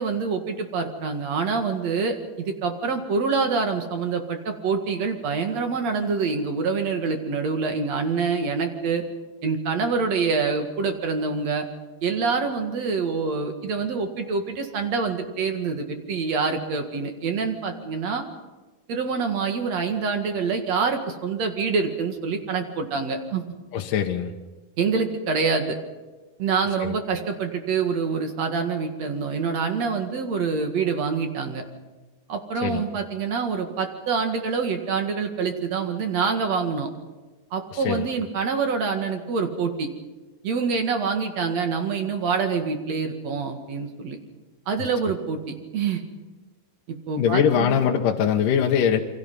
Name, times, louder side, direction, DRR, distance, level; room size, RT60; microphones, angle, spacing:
voice 1, 0.0-9.0 9.4-11.6 12.0-18.2 18.9-23.4 24.8-25.8 26.4-31.6 32.3-36.9 37.5-39.9 40.4-44.2 44.7-45.4 45.7-46.0 46.9-47.8, right 5 dB, 50° right, 5 dB, 2.6 m, -26 dB
voice 2, 23.7-24.3 26.8-27.0 32.6-32.8 37.7-38.1 47.2-49.0, left 8 dB, 65° left, 2 dB, 2.6 m, -22 dB
28.5 x 24.5 x 5.5 m, 1.2 s
omnidirectional pair, 4.5 m